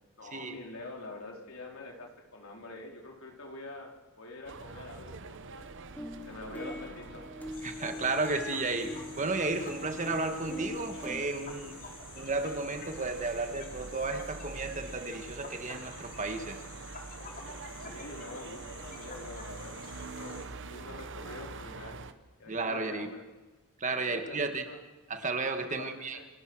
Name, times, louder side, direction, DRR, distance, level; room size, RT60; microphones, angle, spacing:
voice 1, 0.2-5.7 6.2-7.3 17.8-22.0 22.4-23.2 24.1-24.8 25.6-26.2, left 2 dB, 70° left, 1 dB, 4.4 m, -46 dB
sound 1, 4.4-22.1, right 3 dB, 60° right, 1.2 m, -45 dB
sound 2, 5.9-11.2, left 1 dB, 10° left, 3.2 m, -43 dB
sound 3, 7.5-20.5, left 5 dB, 40° left, 3.6 m, -50 dB
voice 2, 7.6-11.8 12.2-16.6 22.5-23.1 23.8-24.6 25.1-26.2, right 3 dB, 35° right, 6 dB, 1.8 m, -33 dB
28.0 x 20.0 x 6.4 m, 1.2 s
head